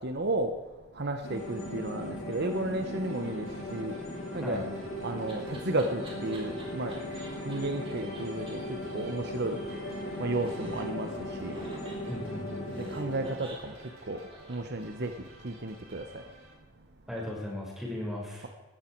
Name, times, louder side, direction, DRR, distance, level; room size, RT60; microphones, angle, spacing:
voice 1, 0.0-4.7 5.0-6.9 7.4-9.6 10.1-11.7 12.8-16.2 16.8-16.9, right 2 dB, 50° right, 6 dB, 1.1 m, -33 dB
sound 1, 1.2-13.3, left 1 dB, 70° left, 4.5 m, -38 dB
sound 2, 2.8-16.5, right 2 dB, 90° right, 4.5 m, -53 dB
Laughter, 4.8-7.6 7.8-7.9 8.1-8.2 8.5-8.6 8.8-10.1 10.4-11.0 11.5-15.3, right 2 dB, 25° right, 4.1 m, -50 dB
voice 2, 12.1-12.9 17.1-18.5, left 1 dB, ahead, -3 dB, 5.4 m, -37 dB
18.0 x 13.5 x 4.7 m, 1.2 s
head